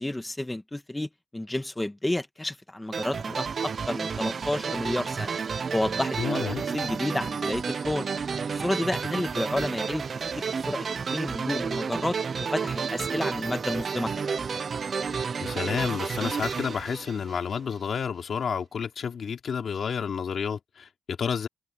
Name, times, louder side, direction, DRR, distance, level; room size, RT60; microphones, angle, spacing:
voice 1, 0.0-5.3 5.7-6.4 6.7-8.1 8.5-10.0 10.3-14.3, left 1 dB, 15° left, 1.5 m, -31 dB
sound 1, 2.9-17.8, right 5 dB, 55° right, 0.7 m, -31 dB
voice 2, 6.2-6.6 15.4-21.5, left 6 dB, 70° left, 3.1 m, -30 dB
cardioid pair, 85°, 0 cm